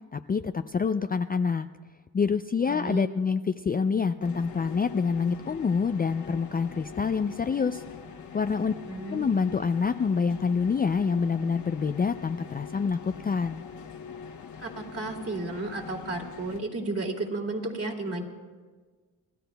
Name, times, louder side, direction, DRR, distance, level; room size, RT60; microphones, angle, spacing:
voice 1, 0.1-1.7 2.1-7.8 8.3-8.7 9.1-13.6, left 5 dB, 25° left, 9 dB, 0.4 m, -26 dB
voice 2, 2.7-3.1 8.9-9.3 14.6-18.2, right 2 dB, 35° right, 1 dB, 2.7 m, -33 dB
sound 1, 4.2-16.6, left 6 dB, 50° left, 1.3 m, -43 dB
29.5 x 13.5 x 2.3 m, 1.4 s
cardioid pair, 65°, 39 cm